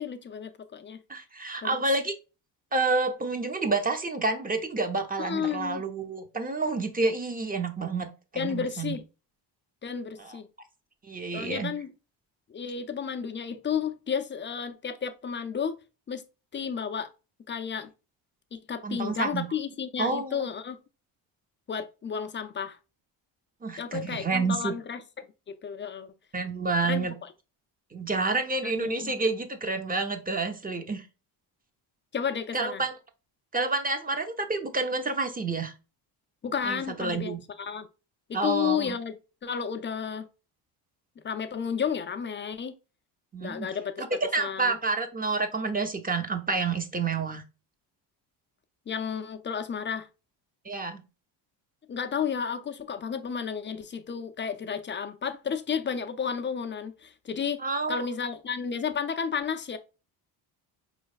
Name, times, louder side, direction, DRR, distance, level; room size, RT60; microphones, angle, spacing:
voice 1, 0.0-1.0 1.6-1.8 5.2-5.8 8.4-9.0 9.8-10.5 11.3-11.9 12.5-15.8 16.1-16.2 16.5-17.1 17.5-17.9 18.5-20.8 21.7-22.8 23.8-26.1 26.8-27.1 28.6-29.1 32.1-32.8 36.4-37.9 38.3-40.3 41.2-42.7 43.4-44.8 48.9-50.1 51.9-59.8, left 7 dB, 25° left, 0.4 m, -32 dB
voice 2, 1.1-2.2 2.7-8.1 8.3-9.0 10.2-10.3 11.0-11.7 18.8-19.5 20.0-20.4 23.6-24.7 26.3-27.1 27.9-31.1 32.5-32.9 33.5-35.7 36.6-37.4 38.3-39.0 43.3-43.7 44.0-47.4 50.6-51.0 57.6-58.0, right 3 dB, 20° right, 0.7 m, -29 dB
4.7 x 3.2 x 2.3 m
cardioid pair, 85°, 46 cm